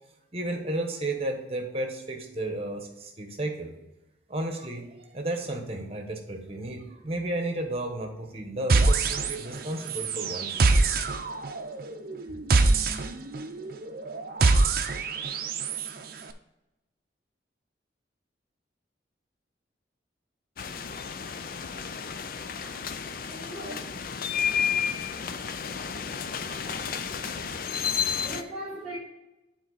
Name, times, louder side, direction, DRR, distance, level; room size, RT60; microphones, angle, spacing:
voice 1, 0.3-3.7 4.3-10.6, right 1 dB, 35° right, 3 dB, 1.2 m, -33 dB
sound 1, 8.7-9.6 9.9-15.9, right 3 dB, 55° right, 0.6 m, -24 dB
sound 2, 20.6-28.4, left 7 dB, 50° left, 0.5 m, -31 dB
voice 2, 23.3-23.9 27.5-27.8 28.2-29.0, equal, 5° right, -7 dB, 2.6 m, -40 dB
9.1 x 4.3 x 4.0 m, 0.98 s
head